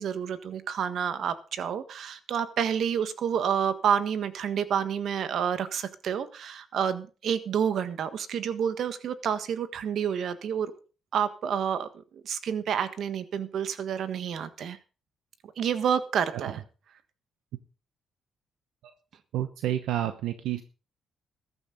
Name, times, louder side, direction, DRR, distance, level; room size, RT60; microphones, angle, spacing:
voice 1, 0.0-10.7 11.1-14.8 15.6-16.6, right 8 dB, 65° right, 12 dB, 1.5 m, -29 dB
voice 2, 19.3-20.6, right 12 dB, 85° right, 10 dB, 1.0 m, -29 dB
14.5 x 12.5 x 4.0 m, 0.35 s
cardioid pair, 90°, 0 cm